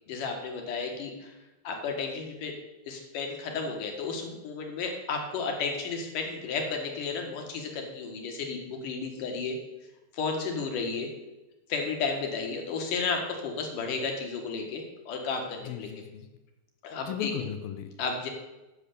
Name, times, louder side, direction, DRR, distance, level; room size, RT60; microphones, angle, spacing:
voice 1, 0.1-1.3 1.6-2.5 2.9-9.6 10.1-11.1 11.7-15.9 16.8-17.3 18.0-18.3, left 4 dB, 60° left, 2 dB, 2.8 m, -33 dB
voice 2, 15.6-16.3 17.0-17.9, left 9 dB, 75° left, 9 dB, 2.3 m, -36 dB
10.5 x 6.9 x 6.7 m, 1.0 s
omnidirectional pair, 4.8 m